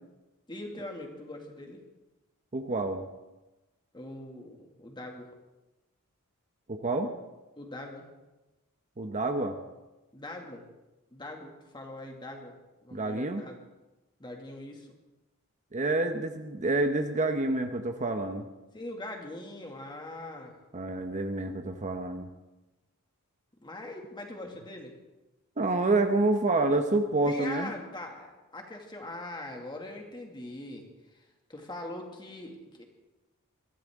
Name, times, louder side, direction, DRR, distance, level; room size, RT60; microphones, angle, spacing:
voice 1, 0.5-1.8 3.9-5.4 7.6-8.1 10.1-10.7 11.1-12.6 12.8-13.6 14.2-14.9 18.7-20.6 23.6-25.0 27.2-32.8, left 1 dB, 20° left, 2 dB, 2.2 m, -42 dB
voice 2, 2.5-3.0 6.7-7.1 9.0-9.6 12.9-13.4 15.7-18.5 20.7-22.3 25.6-27.7, right 2 dB, 35° right, 6 dB, 0.9 m, -28 dB
22.0 x 14.5 x 3.7 m, 1.1 s
head